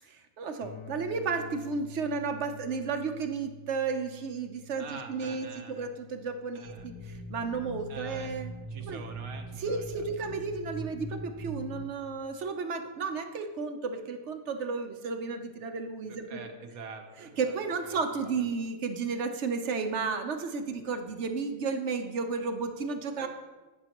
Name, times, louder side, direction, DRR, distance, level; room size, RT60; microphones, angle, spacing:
voice 1, 0.1-8.5 8.8-9.0 9.6-16.5 17.2-23.3, right 4 dB, 55° right, 6 dB, 1.0 m, -33 dB
sound 1, 0.6-10.5, left 4 dB, 85° left, 1.3 m, -51 dB
voice 2, 4.8-5.9 6.5-6.8 7.9-8.4 8.7-10.3 16.1-18.4 23.2-23.3, right 4 dB, 75° right, 5 dB, 1.4 m, -46 dB
sound 2, 6.6-11.9, right 1 dB, 25° left, 0.8 m, -41 dB
16.5 x 6.6 x 3.0 m, 1.2 s
omnidirectional pair, 1.5 m